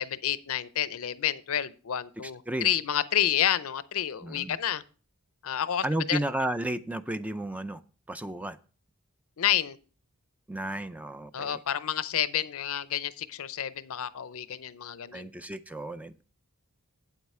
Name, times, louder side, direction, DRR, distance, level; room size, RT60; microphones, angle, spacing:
voice 1, 0.0-4.8 5.4-6.2 9.4-9.8 11.3-15.3, left 10 dB, 65° left, 16 dB, 0.6 m, -29 dB
voice 2, 2.2-2.7 4.2-4.6 5.8-7.8 8.1-8.6 10.5-11.6 15.1-16.2, right 1 dB, 5° right, 11 dB, 0.4 m, -33 dB
8.6 x 8.1 x 4.2 m, 0.38 s
head